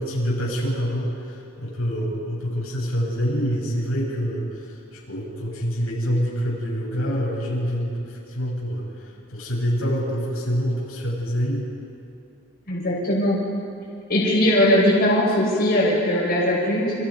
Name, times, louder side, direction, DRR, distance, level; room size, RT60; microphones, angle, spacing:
voice 1, 0.0-8.9 9.3-11.7, equal, 90° left, -4 dB, 7.8 m, -26 dB
voice 2, 12.7-13.4 14.1-16.9, left 1 dB, 45° left, -4 dB, 6.0 m, -20 dB
28.5 x 28.5 x 5.5 m, 2.5 s
head